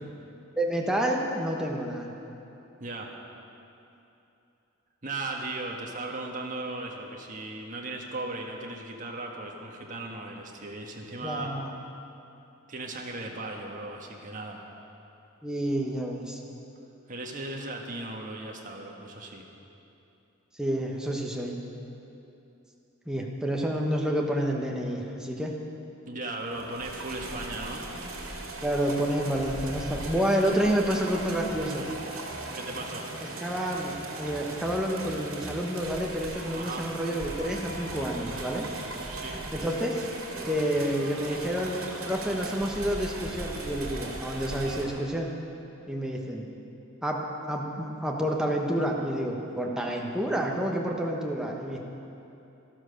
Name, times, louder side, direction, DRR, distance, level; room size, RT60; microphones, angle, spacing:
voice 1, 0.6-2.1 11.2-11.7 15.4-16.4 20.6-21.6 23.1-25.5 28.6-31.9 33.4-38.6 39.5-40.0 40.5-41.8 42.1-45.4 45.9-46.5 47.0-51.8, equal, 5° right, -1 dB, 1.2 m, -29 dB
voice 2, 2.8-3.1 5.0-11.5 12.7-14.6 17.1-19.4 26.1-27.9 32.5-33.1 36.5-36.8 39.1-39.4, right 2 dB, 40° right, 0 dB, 1.5 m, -37 dB
sound 1, 26.4-44.9, right 2 dB, 85° right, 2.3 m, -38 dB
12.5 x 12.0 x 6.6 m, 2.9 s
head